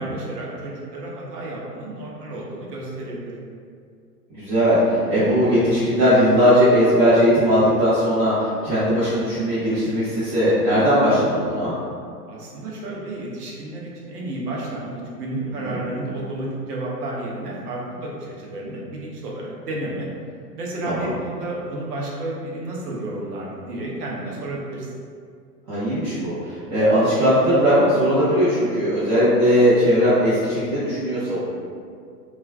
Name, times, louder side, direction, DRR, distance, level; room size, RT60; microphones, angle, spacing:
voice 1, 0.0-3.4 12.3-20.1 20.5-24.9, right 2 dB, 70° right, -3 dB, 0.9 m, -31 dB
voice 2, 4.3-11.7 15.6-15.8 20.8-21.1 25.7-31.4, equal, 35° right, -13 dB, 1.0 m, -19 dB
3.1 x 2.3 x 2.2 m, 2.2 s
hypercardioid pair, 115°, 49 cm